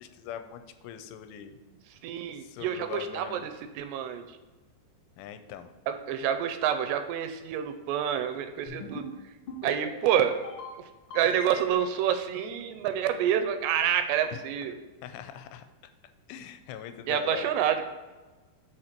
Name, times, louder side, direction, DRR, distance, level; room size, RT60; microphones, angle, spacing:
voice 1, 0.0-1.6 2.4-3.4 5.2-5.7 15.0-15.6 16.3-17.6, left 9 dB, 85° left, 9 dB, 2.6 m, -41 dB
voice 2, 1.9-4.2 5.9-9.1 9.6-10.4 10.8-10.9 11.1-14.8 17.1-17.8, right 9 dB, 85° right, 8 dB, 2.5 m, -28 dB
sound 1, 8.7-9.1 9.5-9.9 10.3-10.7 11.1-11.9, left 2 dB, 40° left, 2.4 m, -40 dB
6.5 x 4.2 x 5.8 m, 1.2 s
omnidirectional pair, 5.0 m